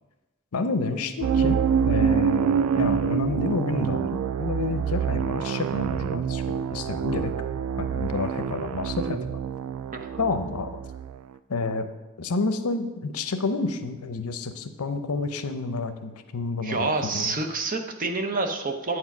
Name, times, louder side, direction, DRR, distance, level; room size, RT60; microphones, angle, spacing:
voice 1, 0.5-7.5 7.8-9.4 10.2-10.8 11.5-11.9 12.2-17.3, left 3 dB, 80° left, 9 dB, 0.6 m, -29 dB
sound 1, 1.2-11.2, right 7 dB, 80° right, 0.3 m, -26 dB
voice 2, 9.9-10.4 16.6-19.0, right 3 dB, 35° right, 5 dB, 0.7 m, -28 dB
8.6 x 4.7 x 5.9 m, 1.1 s
head